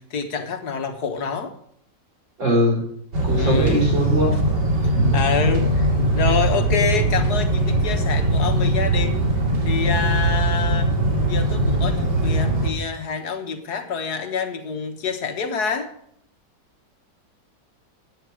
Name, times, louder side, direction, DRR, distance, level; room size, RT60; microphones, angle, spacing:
voice 1, 0.0-1.5 3.4-3.8 5.1-9.3 9.7-10.9 11.2-15.9, left 5 dB, 60° left, 6 dB, 1.8 m, -27 dB
voice 2, 2.4-2.8 3.2-4.4 4.9-5.2, equal, 90° right, 1 dB, 5.1 m, -21 dB
sound 1, 3.1-12.7, right 1 dB, 70° right, 2.9 m, -20 dB
13.0 x 9.5 x 4.9 m, 0.68 s
omnidirectional pair, 2.0 m